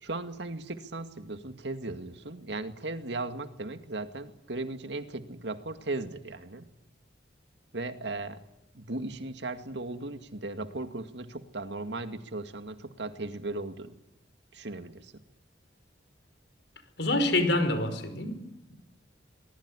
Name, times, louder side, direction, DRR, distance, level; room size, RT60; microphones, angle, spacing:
voice 1, 0.0-6.7 7.7-8.4 8.7-13.9 14.5-15.1, right 2 dB, 70° right, 8 dB, 2.1 m, -37 dB
voice 2, 17.0-18.4, left 1 dB, 65° left, 9 dB, 5.2 m, -26 dB
23.5 x 21.0 x 9.9 m, 0.87 s
head